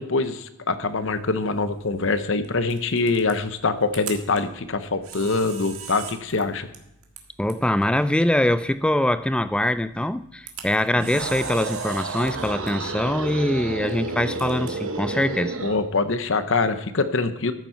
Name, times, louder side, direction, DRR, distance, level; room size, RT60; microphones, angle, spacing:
voice 1, 0.0-6.7 15.6-17.5, left 3 dB, 60° left, 11 dB, 0.8 m, -24 dB
Camera, 0.9-16.3, right 7 dB, 85° right, 1.7 m, -44 dB
voice 2, 7.4-15.6, left 1 dB, 5° left, 13 dB, 0.3 m, -23 dB
sound 1, 10.9-15.8, right 3 dB, 65° right, 0.9 m, -31 dB
14.0 x 7.3 x 4.4 m, 0.87 s
head